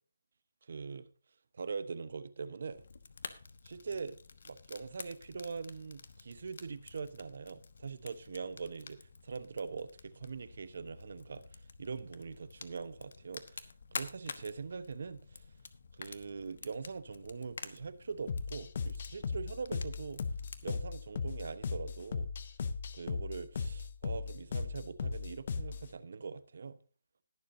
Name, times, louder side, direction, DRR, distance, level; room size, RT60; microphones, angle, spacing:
voice 1, 0.6-1.1 1.5-2.8 3.6-4.2 4.4-13.7 13.9-15.4 15.9-20.2 20.6-22.3 22.9-26.8, right 5 dB, 65° right, 1.0 m, -42 dB
Fire, 2.7-20.7, left 4 dB, 65° left, 1.2 m, -50 dB
sound 1, 18.3-25.9, left 5 dB, 50° left, 1.0 m, -37 dB
20.5 x 7.3 x 2.7 m
hypercardioid pair, 160°, 0 cm